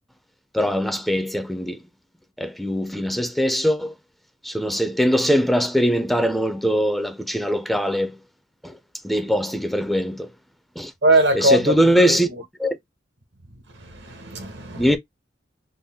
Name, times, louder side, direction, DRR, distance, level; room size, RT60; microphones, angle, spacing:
voice 1, 0.5-1.8 2.4-3.9 4.4-8.2 8.6-8.7 9.0-10.3 10.8-10.9 11.3-12.3 12.6-12.8 14.8-15.0, equal, ahead, 0.4 m, -21 dB
voice 2, 11.0-12.3 13.8-14.9, right 1 dB, 65° right, 1.0 m, -21 dB
3.8 x 2.2 x 3.5 m
head